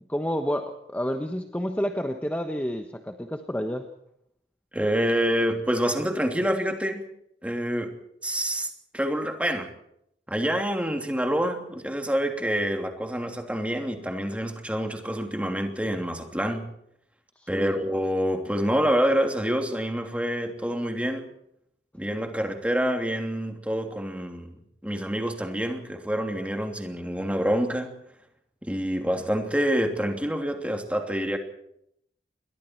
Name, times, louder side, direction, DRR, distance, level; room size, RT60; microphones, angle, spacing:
voice 1, 0.1-3.9 17.4-17.8, equal, 10° left, 6 dB, 1.2 m, -29 dB
voice 2, 4.7-7.0 7.4-7.9 8.2-8.7 8.9-9.7 10.3-16.7 17.5-21.3 21.9-24.5 24.8-27.9 28.6-31.4, equal, 5° right, 4 dB, 2.9 m, -27 dB
29.0 x 23.0 x 4.6 m, 0.74 s
head